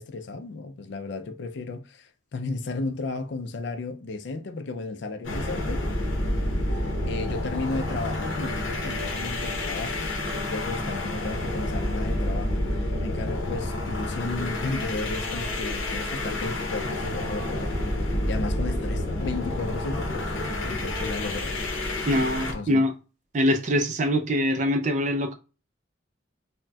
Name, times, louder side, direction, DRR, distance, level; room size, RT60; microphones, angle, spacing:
voice 1, 0.0-5.8 6.7-21.7 22.5-22.8, left 3 dB, 65° left, 0.4 m, -34 dB
sound 1, 5.2-22.6, left 1 dB, 80° left, 0.8 m, -29 dB
sound 2, 6.7-13.6, equal, 85° right, 0.8 m, -42 dB
sound 3, 14.1-19.3 19.6-22.5, equal, 15° left, 1.2 m, -42 dB
voice 2, 22.1-22.9 23.3-25.3, equal, 40° right, 0.4 m, -23 dB
4.0 x 2.1 x 2.2 m
head